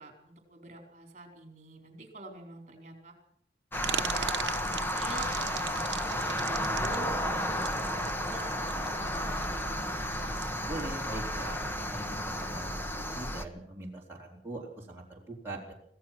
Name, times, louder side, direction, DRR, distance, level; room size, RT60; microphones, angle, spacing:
voice 1, 0.0-3.1 3.8-7.1 7.4-10.2, right 2 dB, 40° right, 3 dB, 4.6 m, -46 dB
sound 1, 3.7-13.4, equal, 10° left, 1.3 m, -32 dB
sound 2, 3.8-10.8, right 10 dB, 70° right, 1.0 m, -39 dB
voice 2, 10.7-11.6 11.9-15.7, right 2 dB, 15° right, -5 dB, 4.2 m, -42 dB
25.5 x 17.0 x 6.1 m, 0.67 s
head